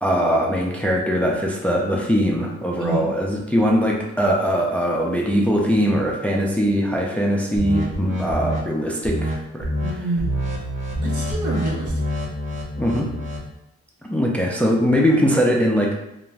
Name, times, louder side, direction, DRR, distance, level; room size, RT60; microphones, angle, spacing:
voice 1, 0.0-9.7 12.8-13.1 14.1-15.9, equal, 5° left, -1 dB, 0.3 m, -21 dB
voice 2, 2.8-3.1 9.8-10.4 11.0-12.4, right 2 dB, 75° right, -3 dB, 0.9 m, -28 dB
sound 1, 7.6-8.6 9.0-9.3 9.6-9.9 10.2-13.5, equal, 40° right, 0.9 m, -26 dB
2.4 x 2.1 x 3.2 m, 0.88 s
cardioid pair, 90°, 30 cm